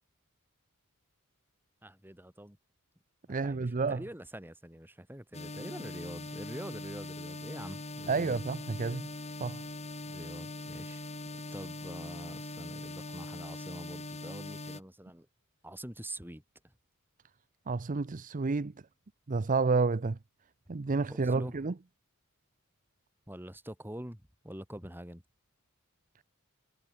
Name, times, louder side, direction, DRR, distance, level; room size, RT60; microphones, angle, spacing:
voice 1, 1.8-2.6 3.3-8.4 10.0-11.0 11.5-15.3 15.6-16.4 21.1-21.6 23.3-25.2, right 1 dB, 10° right, 4.6 m, -45 dB
voice 2, 3.3-4.0 8.1-9.1 9.4-9.6 17.7-18.7 19.3-20.2 20.7-21.7, right 4 dB, 35° right, 0.6 m, -30 dB
sound 1, 5.3-14.8, left 2 dB, 30° left, 3.1 m, -42 dB
head